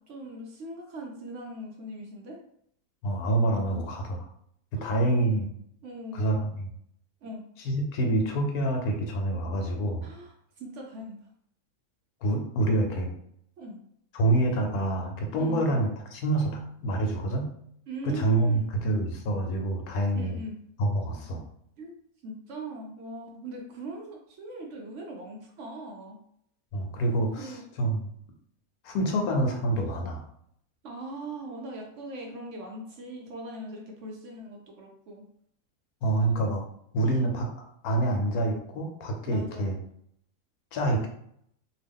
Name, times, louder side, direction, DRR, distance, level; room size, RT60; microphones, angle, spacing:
voice 1, 0.1-2.4 3.6-3.8 4.8-4.9 5.8-6.4 7.2-7.4 10.0-11.2 13.6-13.8 15.4-15.7 17.9-18.7 20.1-20.6 21.8-21.9 22.2-26.2 27.4-27.6 30.8-35.2 37.0-37.3 39.3-39.7, right 1 dB, 65° right, 0 dB, 0.8 m, -40 dB
voice 2, 3.0-4.2 4.8-5.5 6.1-6.7 7.6-10.1 12.2-13.1 14.1-17.5 18.0-20.4 20.8-21.4 26.7-28.1 28.8-30.2 36.0-36.6 36.9-37.5 37.8-39.7 40.7-41.1, right 2 dB, 80° left, 3 dB, 1.1 m, -27 dB
2.7 x 2.3 x 3.5 m, 0.69 s
omnidirectional pair, 1.6 m